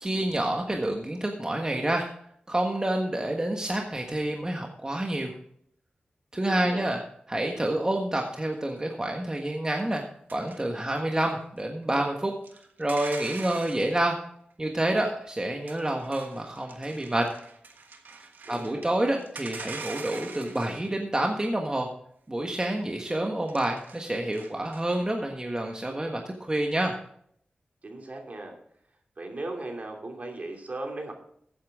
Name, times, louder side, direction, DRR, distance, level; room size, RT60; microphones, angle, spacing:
voice 1, 0.0-2.1 2.5-5.3 6.3-7.0 7.3-10.0 10.3-12.3 12.8-14.2 14.6-17.3 18.5-21.9 22.3-26.9, right 1 dB, 25° right, 2 dB, 1.4 m, -28 dB
voice 2, 6.5-6.9 18.4-18.8 27.8-28.5 29.2-31.1, right 2 dB, 50° right, 2 dB, 2.9 m, -37 dB
sound 1, 8.5-8.8 9.9-10.0 10.3-11.0 11.6-12.0 12.4-14.1 15.6-18.9 19.2-21.4 23.4-25.0, right 4 dB, 85° right, 1.4 m, -43 dB
15.0 x 8.6 x 3.7 m, 0.66 s
wide cardioid pair, 65°, 3 cm